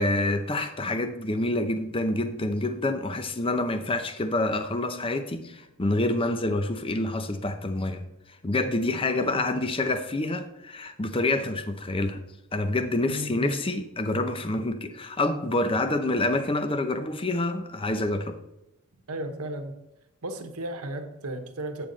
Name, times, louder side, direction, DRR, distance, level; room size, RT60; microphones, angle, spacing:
voice 1, 0.0-8.0 8.4-12.2 12.5-18.4, left 2 dB, 25° left, 0.7 m, -27 dB
voice 2, 9.1-9.6 13.1-13.6 19.1-19.7 20.2-21.9, right 1 dB, 80° right, 1.2 m, -35 dB
8.9 x 7.0 x 4.0 m
head